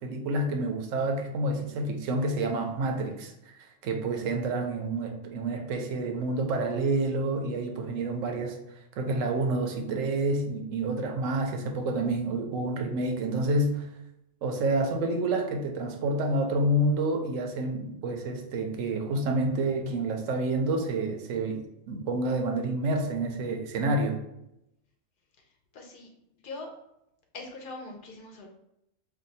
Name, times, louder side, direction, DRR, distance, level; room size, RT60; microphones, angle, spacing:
voice 1, 0.0-8.6 9.0-13.9 14.4-24.2, right 2 dB, 80° right, 4 dB, 1.0 m, -28 dB
voice 2, 25.7-26.1 26.4-26.7 27.3-28.5, left 2 dB, 55° left, 2 dB, 0.6 m, -41 dB
2.6 x 2.2 x 4.0 m, 0.83 s
omnidirectional pair, 1.3 m